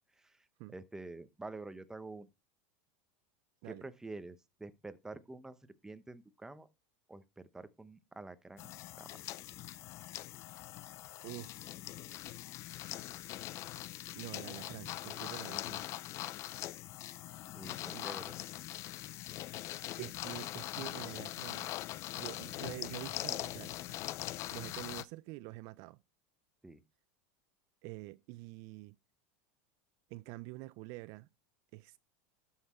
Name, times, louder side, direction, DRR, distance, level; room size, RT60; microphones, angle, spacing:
voice 1, 0.7-2.3 3.6-5.6 5.8-6.7 7.1-9.2 17.5-18.4 26.6-26.8, right 2 dB, 10° right, 0.8 m, -48 dB
sound 1, 8.6-25.0, left 15 dB, 45° left, 0.5 m, -42 dB
voice 2, 11.2-11.7 14.1-15.9 17.8-18.2 20.0-21.8 22.2-24.0 24.5-26.0 27.8-29.0 30.1-31.3 31.7-32.0, right 21 dB, 55° right, 0.4 m, -47 dB
12.5 x 5.7 x 4.3 m
supercardioid pair, 125°, 7 cm